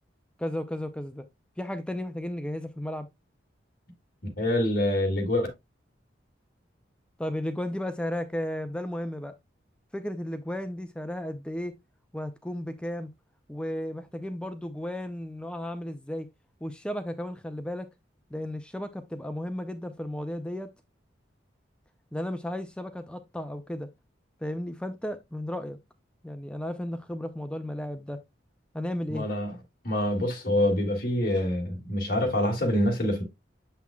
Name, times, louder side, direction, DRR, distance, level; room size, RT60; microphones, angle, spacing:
voice 1, 0.4-1.2 1.6-3.1 7.2-9.3 9.9-11.7 12.1-13.1 13.5-16.3 16.6-17.9 18.3-20.7 22.1-23.9 24.4-25.8 26.2-28.2 28.7-29.3, left 1 dB, 5° left, 0.4 m, -34 dB
voice 2, 4.4-5.5 29.1-29.5 29.8-33.2, left 1 dB, 50° left, 2.1 m, -26 dB
7.3 x 5.7 x 2.3 m
head